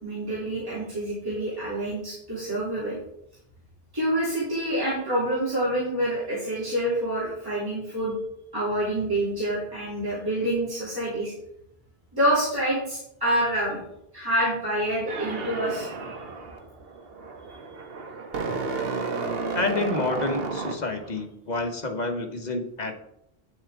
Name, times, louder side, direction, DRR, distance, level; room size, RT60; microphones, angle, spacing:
voice 1, 0.0-3.0 3.9-8.2 8.5-11.3 12.1-13.8 14.1-15.9 17.4-17.5, right 1 dB, 20° right, -10 dB, 3.0 m, -27 dB
sound 1, 15.1-21.2, right 4 dB, 70° right, 1.2 m, -32 dB
voice 2, 19.5-22.9, left 2 dB, 45° left, 4 dB, 1.1 m, -28 dB
9.2 x 7.1 x 3.6 m, 0.77 s
omnidirectional pair, 1.0 m